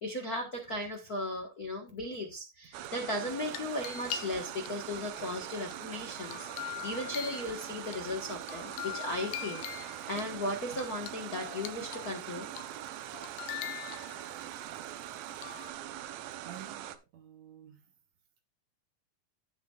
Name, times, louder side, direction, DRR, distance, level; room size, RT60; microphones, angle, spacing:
voice 1, 0.0-12.5, left 1 dB, 50° left, 1.1 m, -36 dB
sound 1, 2.7-17.0, right 12 dB, 85° right, 2.5 m, -42 dB
sound 2, 3.3-4.7 5.2-8.0 8.4-10.3 10.7-12.2 12.6-12.9 13.1-14.4 15.4-15.7, left 12 dB, 80° left, 2.4 m, -43 dB
voice 2, 14.4-14.8 16.4-17.8, right 10 dB, 65° right, 1.9 m, -51 dB
17.0 x 6.3 x 2.4 m
omnidirectional pair, 3.9 m